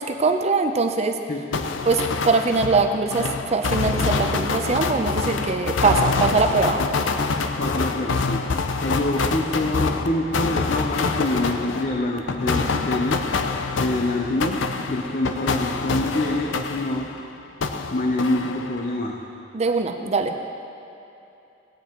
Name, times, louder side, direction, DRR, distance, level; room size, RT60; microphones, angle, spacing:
voice 1, 0.0-1.2 1.9-6.8 19.5-20.3, right 4 dB, 35° right, 5 dB, 0.5 m, -22 dB
voice 2, 1.3-1.7 7.6-8.4 8.8-13.2 13.7-17.1 17.9-19.2, left 1 dB, 45° left, 0 dB, 0.7 m, -26 dB
sound 1, 1.5-17.3 17.6-19.0, left 4 dB, 80° left, 0.5 m, -26 dB
17.5 x 8.9 x 3.0 m, 2.8 s
head